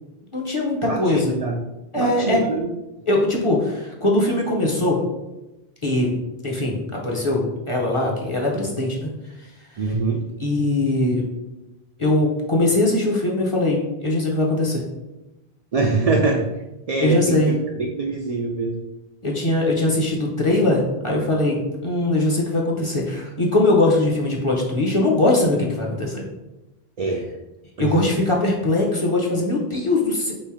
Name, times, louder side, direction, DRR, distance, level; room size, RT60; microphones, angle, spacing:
voice 1, 0.3-1.3 1.9-2.4 3.1-5.0 5.8-6.2 6.4-9.1 9.7-9.8 10.4-11.2 12.0-14.8 17.0-17.5 19.2-26.3 27.8-30.3, left 2 dB, 35° left, -2 dB, 0.7 m, -21 dB
voice 2, 0.9-1.6 2.0-2.7 9.8-10.2 15.7-16.5 16.9-18.8 27.0-27.3 27.8-28.1, right 3 dB, 60° right, 1 dB, 0.4 m, -24 dB
3.2 x 3.0 x 4.7 m, 0.99 s
omnidirectional pair, 1.1 m